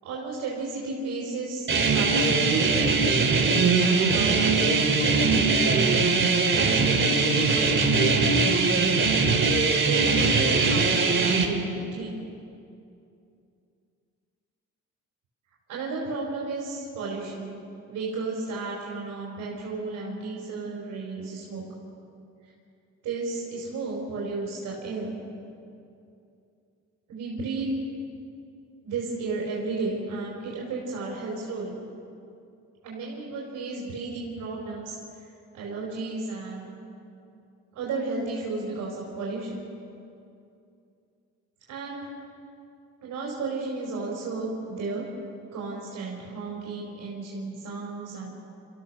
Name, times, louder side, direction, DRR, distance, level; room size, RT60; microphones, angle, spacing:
voice 1, 0.0-2.7 3.4-5.9 6.5-9.1 9.8-12.2 15.7-17.6 17.9-21.7 23.0-25.1 27.1-27.7 28.8-31.8 32.8-35.0 35.5-36.7 37.7-39.6 41.7-42.1 43.0-45.0 45.5-48.3, right 3 dB, 85° right, -4 dB, 5.3 m, -33 dB
sound 1, 1.7-11.5, right 4 dB, 40° right, 2.9 m, -21 dB
26.5 x 16.0 x 6.6 m, 2.6 s
cardioid pair, 90°, 30 cm